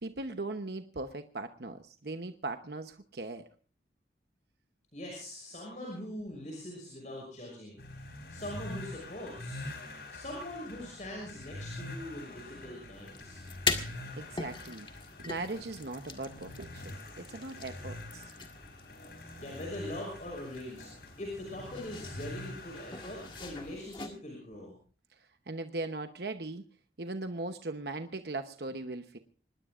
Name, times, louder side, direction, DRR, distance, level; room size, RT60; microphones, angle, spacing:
voice 1, 0.0-3.5 13.8-14.9 15.3-18.3 25.5-26.6 27.0-29.2, right 2 dB, 70° right, 7 dB, 0.9 m, -39 dB
voice 2, 4.9-7.8 8.3-9.6 10.1-13.4 19.4-20.9 21.2-24.8, left 1 dB, 45° left, -1 dB, 6.0 m, -42 dB
sound 1, 7.8-23.7, left 2 dB, 65° left, 4.7 m, -45 dB
sound 2, 12.9-24.1, left 4 dB, 25° left, 1.7 m, -41 dB
25.0 x 20.0 x 2.5 m, 0.39 s
head